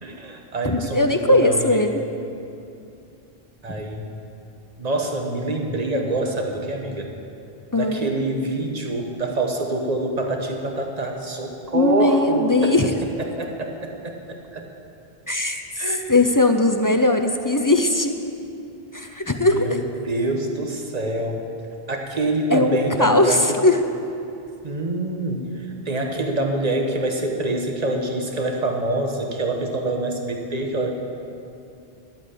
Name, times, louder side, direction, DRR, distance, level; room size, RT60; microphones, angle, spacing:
voice 1, 0.0-1.8 3.6-4.1 4.8-7.1 7.7-12.7 13.2-14.7 15.8-16.0 19.4-21.4 21.9-23.6 24.6-30.9, right 2 dB, 40° right, 2 dB, 1.4 m, -26 dB
voice 2, 0.6-2.0 3.7-3.8 7.7-8.0 11.7-12.9 15.3-18.1 18.9-19.8 22.5-23.8, left 2 dB, 25° left, 6 dB, 0.5 m, -19 dB
12.0 x 8.6 x 8.4 m, 2.7 s
omnidirectional pair, 1.1 m